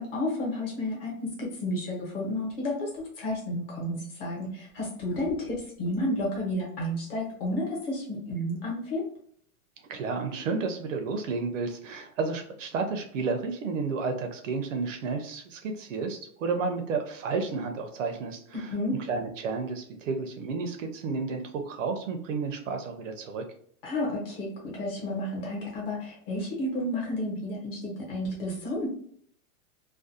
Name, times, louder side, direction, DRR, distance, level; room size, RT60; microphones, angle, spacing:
voice 1, 0.0-9.0 18.5-19.0 23.8-28.9, left 1 dB, 40° left, -3 dB, 1.0 m, -31 dB
voice 2, 9.9-23.4, right 4 dB, 60° right, 5 dB, 0.5 m, -32 dB
2.4 x 2.2 x 2.6 m, 0.62 s
supercardioid pair, 175°, 44 cm